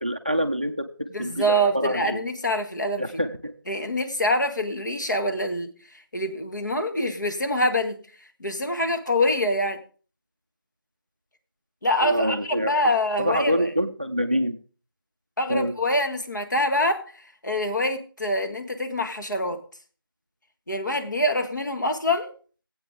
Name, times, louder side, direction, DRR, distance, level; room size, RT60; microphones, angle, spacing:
voice 1, 0.0-2.2 3.0-3.5 12.0-12.8 13.2-14.6 15.5-15.7, equal, 25° right, 7 dB, 0.5 m, -26 dB
voice 2, 1.1-3.0 3.7-5.7 6.1-8.0 8.4-9.8 11.8-13.7 15.4-17.0 17.4-19.6 20.7-22.3, left 1 dB, 55° left, 5 dB, 1.9 m, -25 dB
17.5 x 8.4 x 3.7 m, 0.39 s
figure-of-eight pair, 175°, 12 cm